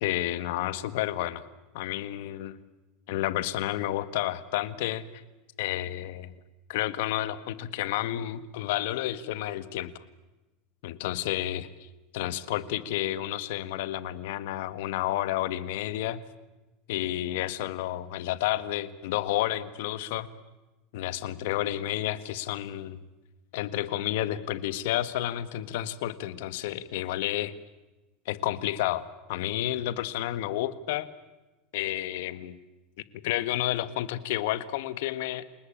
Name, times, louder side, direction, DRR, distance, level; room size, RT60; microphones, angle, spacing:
voice 1, 0.0-1.4 1.7-2.5 3.1-5.1 5.6-6.3 6.7-9.9 10.8-11.9 12.1-16.2 16.9-20.3 20.9-23.0 23.5-27.5 28.2-31.1 31.7-32.6 33.2-35.4, left 14 dB, 75° left, 15 dB, 1.6 m, -30 dB
29.5 x 19.5 x 8.7 m, 1.1 s
supercardioid pair, 140°, 0 cm